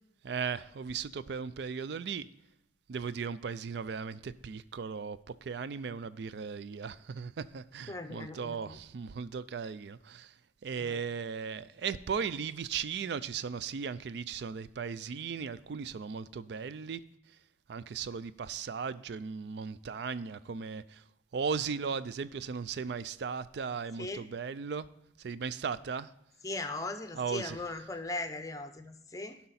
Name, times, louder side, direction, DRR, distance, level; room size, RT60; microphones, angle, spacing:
voice 1, 0.2-2.3 2.9-10.3 10.6-17.0 17.7-21.0 21.3-24.9 25.2-26.1 27.1-27.6, right 6 dB, 60° right, 0.4 m, -37 dB
voice 2, 7.9-8.8 10.8-11.0 24.0-24.3 26.4-29.4, left 2 dB, 20° left, 0.6 m, -39 dB
11.5 x 5.7 x 4.1 m
head